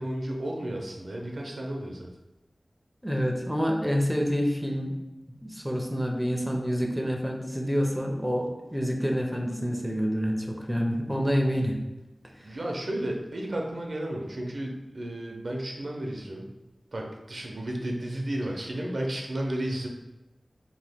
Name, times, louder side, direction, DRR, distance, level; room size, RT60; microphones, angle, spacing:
voice 1, 0.0-2.1 12.4-16.5 16.9-19.9, right 1 dB, 70° right, 0 dB, 0.5 m, -33 dB
voice 2, 3.0-4.9 5.3-11.8 12.4-12.6, equal, 5° right, 1 dB, 0.4 m, -28 dB
2.8 x 2.2 x 3.4 m, 1.0 s
wide cardioid pair, 80°, 0 cm